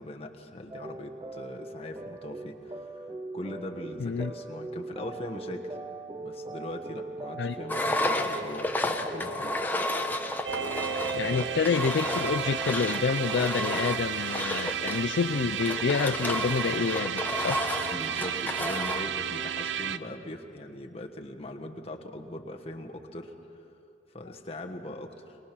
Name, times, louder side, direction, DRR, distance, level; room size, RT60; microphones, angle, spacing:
voice 1, 0.0-3.1 3.3-5.8 6.2-9.6 11.2-11.5 17.9-23.3 24.1-25.4, left 1 dB, 30° left, 3 dB, 1.3 m, -40 dB
sound 1, 0.7-14.0, right 2 dB, 20° right, 0.4 m, -41 dB
voice 2, 4.0-4.3 7.4-7.6 11.1-17.6, left 5 dB, 65° left, 10 dB, 0.4 m, -28 dB
Engine, 7.7-19.1, left 1 dB, 10° left, 0.8 m, -32 dB
sound 2, 10.4-20.0, right 8 dB, 70° right, 0.5 m, -33 dB
22.5 x 21.0 x 6.1 m, 2.8 s
head